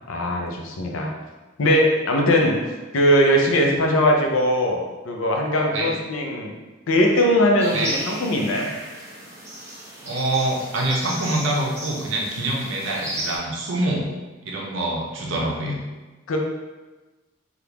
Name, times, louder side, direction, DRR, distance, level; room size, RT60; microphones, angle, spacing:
voice 1, 0.1-1.1 1.6-2.6 2.9-6.5 6.9-8.7 16.3-16.4, equal, 85° left, 1 dB, 0.6 m, -20 dB
sound 1, 7.6-13.4, right 1 dB, 15° right, 0.5 m, -34 dB
voice 2, 10.0-14.1 14.4-15.8, right 1 dB, 70° right, -2 dB, 0.7 m, -25 dB
3.5 x 2.5 x 2.9 m, 1.2 s
head